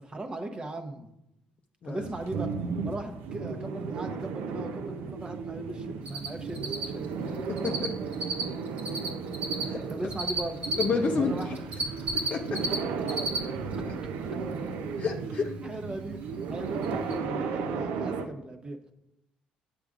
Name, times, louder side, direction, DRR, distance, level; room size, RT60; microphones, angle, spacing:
voice 1, 0.0-1.1 1.8-2.5 2.8-7.0 9.9-10.6 11.1-11.5 12.6-12.7 13.1-13.2 15.6-18.8, right 2 dB, 30° right, 5 dB, 0.8 m, -38 dB
sound 1, 2.0-18.3, right 5 dB, 80° right, 0.5 m, -34 dB
Cricket, 6.1-6.3 6.5-7.9 8.1-10.8 11.4-12.8 13.0-13.4 13.7-13.8 16.3-16.4 16.8-16.9 17.1-17.2, right 3 dB, 50° right, 1.4 m, -30 dB
voice 2, 7.5-7.9 9.6-9.8 10.8-11.4 12.0-12.6 15.0-15.5, left 5 dB, 50° left, 2 dB, 0.6 m, -30 dB
8.0 x 5.0 x 2.4 m, 0.85 s
supercardioid pair, 75°, 3 cm